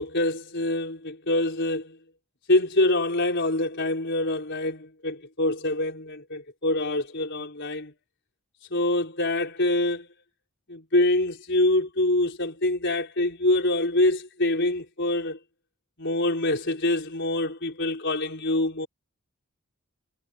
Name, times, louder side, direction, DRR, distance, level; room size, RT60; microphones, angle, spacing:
voice 1, 0.0-2.0 2.5-7.9 8.7-10.1 10.7-15.4 16.0-18.9, left 1 dB, 55° left, 5.0 m, -25 dB
head